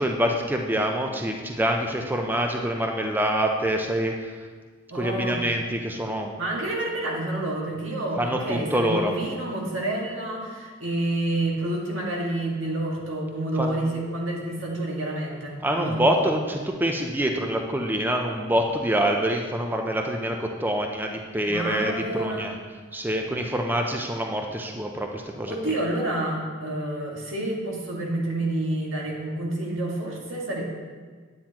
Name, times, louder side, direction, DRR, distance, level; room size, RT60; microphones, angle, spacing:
voice 1, 0.0-4.3 4.9-6.3 8.2-9.1 13.6-13.7 15.6-22.5 22.9-25.8, right 1 dB, 10° right, 2 dB, 0.5 m, -26 dB
voice 2, 4.9-5.4 6.4-16.2 21.5-22.5 25.5-30.6, right 1 dB, 80° right, -2 dB, 1.8 m, -29 dB
9.4 x 8.7 x 2.9 m, 1.5 s
head